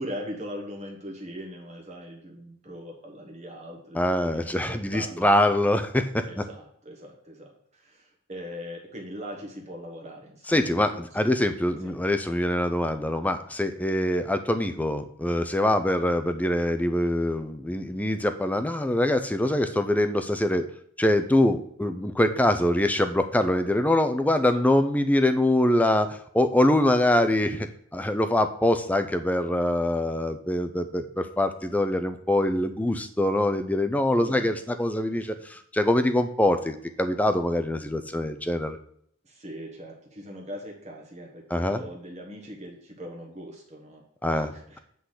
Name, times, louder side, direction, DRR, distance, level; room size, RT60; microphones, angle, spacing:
voice 1, 0.0-5.3 6.3-10.5 11.2-11.3 11.8-12.0 34.1-34.5 35.2-35.3 39.2-44.8, equal, 30° right, -1 dB, 1.2 m, -40 dB
voice 2, 4.0-6.3 10.5-20.7 21.0-27.7 27.9-38.8 41.5-41.8 44.2-44.8, left 1 dB, 5° left, 8 dB, 0.4 m, -24 dB
8.2 x 3.9 x 6.5 m, 0.68 s
head